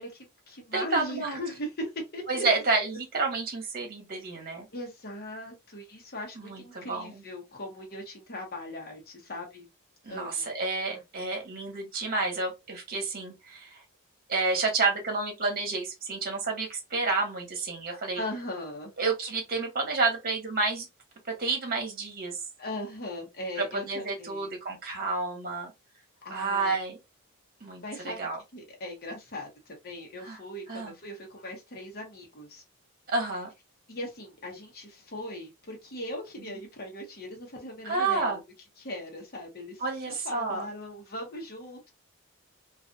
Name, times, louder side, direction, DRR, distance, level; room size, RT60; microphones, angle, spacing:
voice 1, 0.0-2.5 4.7-9.7 10.1-10.5 10.9-11.0 18.1-18.9 22.6-24.5 26.2-26.7 27.8-28.2 28.5-32.6 33.9-38.4 38.8-41.9, left 1 dB, 45° left, 1.0 m, -39 dB
voice 2, 0.7-1.4 2.3-4.7 6.4-7.2 10.0-13.8 14.3-18.2 19.0-20.9 21.3-22.4 23.5-25.7 26.3-27.0 27.6-28.4 30.2-30.4 30.7-30.9 33.1-33.5 36.4-36.6 37.8-38.4 39.8-40.7, right 3 dB, 45° right, 1.1 m, -30 dB
2.5 x 2.3 x 2.5 m
head